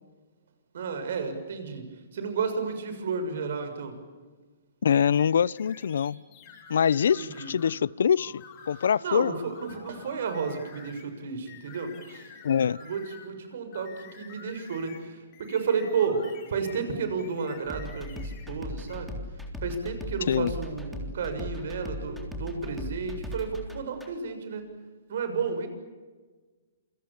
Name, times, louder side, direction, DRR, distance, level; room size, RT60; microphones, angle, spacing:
voice 1, 0.7-4.0 7.2-7.5 9.0-12.3 12.8-24.8 25.1-25.7, right 5 dB, 60° right, 8 dB, 6.7 m, -32 dB
voice 2, 4.8-6.2 6.7-9.3 12.4-12.8 20.3-20.5, left 7 dB, 75° left, 23 dB, 0.7 m, -24 dB
sound 1, 4.9-7.8 8.2-9.1 9.4-11.1 11.5-13.4 13.7-16.9 17.2-18.5 18.9-19.0, left 6 dB, 30° left, 6.6 m, -49 dB
sound 2, 17.7-24.1, left 1 dB, ahead, 3.6 m, -38 dB
28.0 x 25.5 x 7.3 m, 1.4 s
hypercardioid pair, 155°, 0 cm